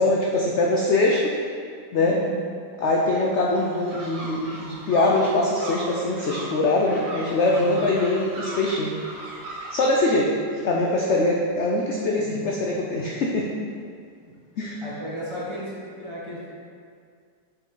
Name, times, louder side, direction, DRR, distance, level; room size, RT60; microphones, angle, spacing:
voice 1, 0.0-1.3 1.9-2.2 2.8-9.0 9.7-13.5 14.6-14.8, left 2 dB, 70° left, -2 dB, 0.6 m, -23 dB
voice 2, 2.0-2.4 7.4-7.8 12.2-12.8 14.2-14.3 14.8-15.7 16.0-16.5, right 1 dB, 20° right, -7 dB, 0.9 m, -36 dB
sound 1, 3.5-10.0, right 1 dB, 55° right, 1.6 m, -38 dB
6.2 x 5.0 x 3.8 m, 2.2 s
omnidirectional pair, 1.8 m